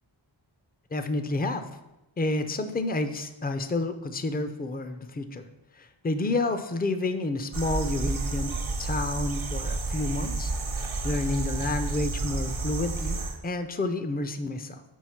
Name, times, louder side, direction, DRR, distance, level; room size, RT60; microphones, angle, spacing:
voice 1, 0.9-1.6 2.2-5.5 5.8-14.8, left 2 dB, 20° left, 9 dB, 0.5 m, -30 dB
sound 1, 7.5-13.4, right 3 dB, 80° right, 1.0 m, -30 dB
4.7 x 4.6 x 5.7 m, 0.97 s
wide cardioid pair, 55°, 48 cm